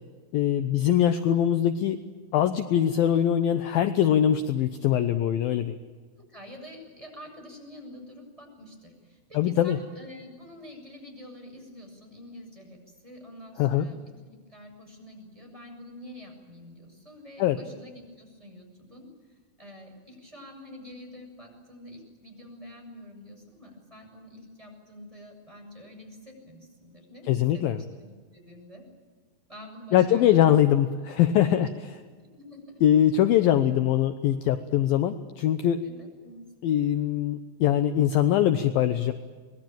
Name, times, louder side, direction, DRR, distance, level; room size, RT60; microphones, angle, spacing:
voice 1, 0.3-2.0 2.3-5.8 9.3-9.8 13.6-13.9 17.4-17.6 27.3-27.8 29.9-31.7 32.8-35.8 36.6-39.1, left 11 dB, 75° left, 9 dB, 2.4 m, -22 dB
voice 2, 6.3-14.0 14.2-19.1 19.6-28.9 29.5-30.6 31.5-32.0 32.3-32.8 35.8-36.4, left 1 dB, 5° right, 0 dB, 6.9 m, -47 dB
26.5 x 21.0 x 9.0 m, 1.5 s
omnidirectional pair, 4.9 m